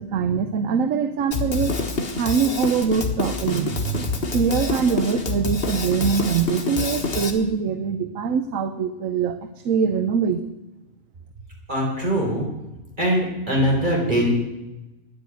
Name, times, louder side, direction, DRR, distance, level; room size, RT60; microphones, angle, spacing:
voice 1, 0.0-1.8 2.1-10.5, right 6 dB, 80° right, 11 dB, 1.1 m, -23 dB
Drum kit, 1.3-7.3, left 4 dB, 50° left, 1.6 m, -27 dB
voice 2, 11.7-12.5 13.0-14.3, equal, 35° right, -1 dB, 3.9 m, -22 dB
10.0 x 9.0 x 9.4 m, 1.0 s
omnidirectional pair, 1.4 m